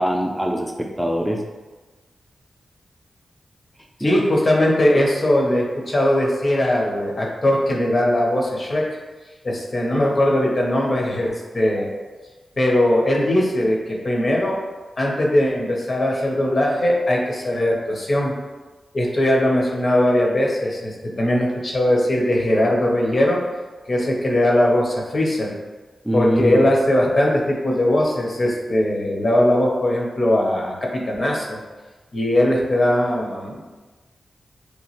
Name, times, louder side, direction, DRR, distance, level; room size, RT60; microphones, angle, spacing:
voice 1, 0.0-1.4 4.0-4.2 26.1-26.6, equal, 5° right, 0 dB, 0.4 m, -22 dB
voice 2, 4.0-8.9 9.4-11.9 12.6-14.6 15.0-18.4 18.9-23.4 23.9-25.6 26.1-31.6 32.1-33.6, left 1 dB, 50° left, -1 dB, 0.7 m, -20 dB
2.9 x 2.2 x 2.9 m, 1.2 s
cardioid pair, 50°, 0 cm